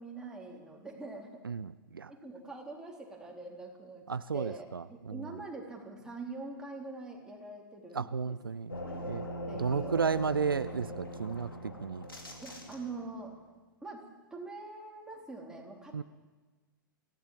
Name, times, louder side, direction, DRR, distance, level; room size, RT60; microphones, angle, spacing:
voice 1, 0.0-1.4 2.1-4.0 4.3-8.4 8.8-9.0 9.5-10.2 12.4-13.3 13.8-14.0 14.3-16.0, right 3 dB, 5° right, -1 dB, 3.9 m, -44 dB
voice 2, 1.4-2.1 4.1-4.8 7.9-8.7 9.1-9.2 9.6-12.1 15.9-16.0, right 5 dB, 75° right, 15 dB, 0.6 m, -33 dB
sound 1, 8.7-13.2, equal, 80° left, 4.0 m, -41 dB
25.0 x 16.5 x 7.5 m, 1.3 s
figure-of-eight pair, 105°, 12 cm